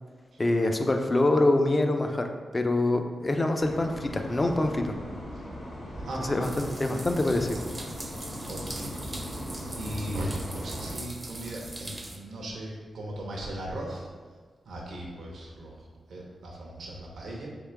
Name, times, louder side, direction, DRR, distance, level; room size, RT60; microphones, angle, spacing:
voice 1, 0.4-4.9 6.2-6.5 6.8-7.6, left 2 dB, 25° left, 5 dB, 0.4 m, -25 dB
sound 1, 3.6-11.0, equal, 60° left, 1.2 m, -39 dB
voice 2, 5.9-6.4 8.5-9.4 9.8-14.1 14.6-17.5, right 1 dB, 75° right, -2 dB, 0.7 m, -38 dB
sound 2, 6.4-12.2, right 2 dB, 25° right, 0.5 m, -41 dB
3.6 x 2.8 x 4.5 m, 1.5 s
wide cardioid pair, 95°, 0 cm